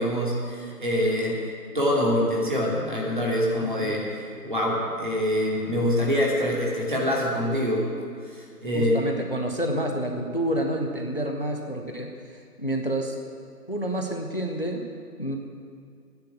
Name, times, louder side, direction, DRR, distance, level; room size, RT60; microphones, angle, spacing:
voice 1, 0.0-1.4 1.7-4.1 4.4-7.9 8.3-9.0, equal, 30° right, -4 dB, 2.6 m, -25 dB
voice 2, 3.6-3.9 8.7-13.2 13.7-14.8 15.2-15.4, right 1 dB, 35° left, 2 dB, 1.0 m, -29 dB
14.5 x 9.9 x 8.0 m, 2.2 s
figure-of-eight pair, 180°, 48 cm